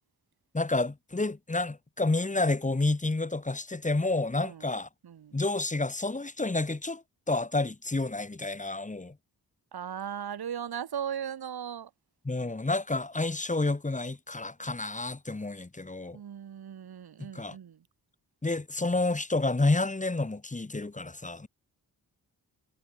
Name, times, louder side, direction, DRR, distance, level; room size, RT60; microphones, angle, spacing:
voice 1, 0.5-4.9 5.3-9.2 12.2-16.2 17.2-17.6 18.4-21.5, left 2 dB, 20° left, 2.6 m, -29 dB
voice 2, 4.4-4.7 5.0-5.4 9.7-11.9 16.1-17.9, right 8 dB, 75° right, 3.4 m, -37 dB
cardioid pair, 100°, 38 cm